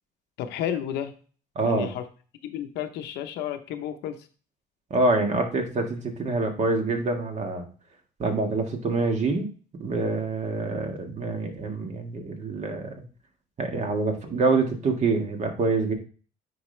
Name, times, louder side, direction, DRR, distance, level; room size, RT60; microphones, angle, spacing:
voice 1, 0.4-1.1 1.6-2.0 2.4-4.2, left 10 dB, 85° left, 7 dB, 0.8 m, -31 dB
voice 2, 1.5-1.9 4.9-7.7 8.2-9.5 9.8-13.0 13.6-15.9, right 3 dB, 45° right, 3 dB, 1.7 m, -26 dB
9.5 x 4.1 x 3.2 m, 0.39 s
cardioid pair, 110°, 17 cm